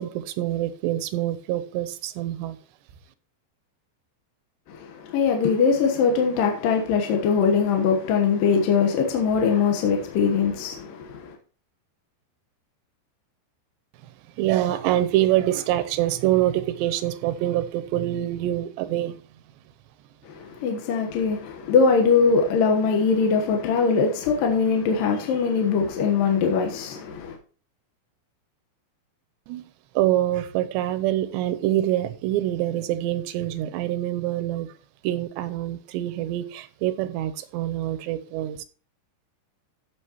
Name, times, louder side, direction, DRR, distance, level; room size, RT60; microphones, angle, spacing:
voice 1, 0.0-2.6 14.4-19.2 29.5-29.7 30.0-34.7 35.0-38.6, right 13 dB, 90° right, 3.0 m, -25 dB
voice 2, 4.7-11.4 20.2-27.4, left 5 dB, 65° left, 2.6 m, -22 dB
14.5 x 6.2 x 3.0 m
omnidirectional pair, 4.9 m